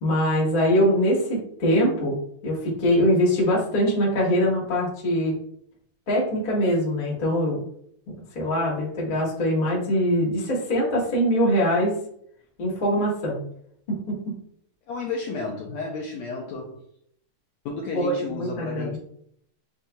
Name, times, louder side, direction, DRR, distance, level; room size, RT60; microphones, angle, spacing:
voice 1, 0.0-2.2 2.4-5.3 6.1-7.6 8.3-11.9 12.6-13.4 13.9-14.3 17.9-19.0, equal, 40° left, -5 dB, 0.7 m, -23 dB
voice 2, 14.9-16.8 17.6-19.0, left 3 dB, 80° left, -1 dB, 1.6 m, -32 dB
7.4 x 2.7 x 2.3 m, 0.67 s
omnidirectional pair, 3.7 m